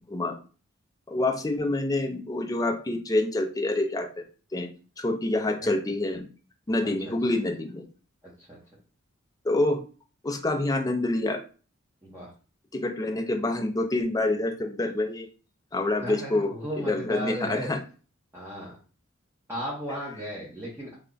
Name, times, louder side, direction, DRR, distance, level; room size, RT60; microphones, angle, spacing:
voice 1, 1.1-4.2 4.5-6.3 6.7-7.9 9.4-9.8 10.2-11.4 12.7-15.3 15.7-17.8, left 2 dB, 20° left, 4 dB, 0.5 m, -27 dB
voice 2, 6.8-7.1 8.2-8.6 12.0-12.3 16.0-17.7 18.3-18.8 19.5-21.0, equal, 10° right, -7 dB, 0.9 m, -36 dB
3.4 x 2.2 x 3.8 m, 0.37 s
head